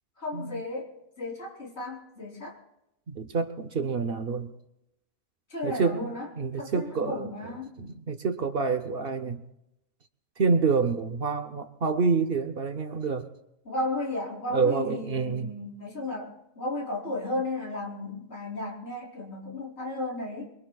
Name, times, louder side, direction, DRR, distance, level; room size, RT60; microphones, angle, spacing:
voice 1, 0.2-2.6 5.5-6.3 6.6-7.8 13.7-20.5, left 2 dB, 65° left, -2 dB, 3.8 m, -34 dB
voice 2, 3.1-4.5 5.6-9.4 10.4-13.3 14.5-15.5, right 5 dB, 55° right, 8 dB, 1.0 m, -28 dB
27.5 x 22.0 x 2.3 m, 0.88 s
omnidirectional pair, 1.2 m